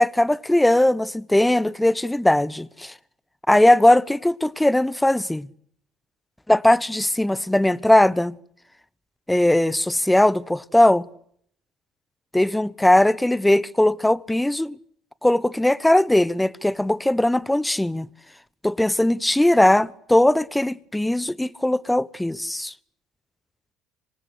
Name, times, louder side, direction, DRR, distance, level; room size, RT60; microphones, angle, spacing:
voice 1, 0.0-2.9 3.5-5.5 6.5-8.4 9.3-11.1 12.3-14.7 15.2-18.1 18.6-22.7, left 1 dB, 5° left, 1.1 m, -19 dB
26.5 x 26.0 x 8.3 m
hypercardioid pair, 65°, 0 cm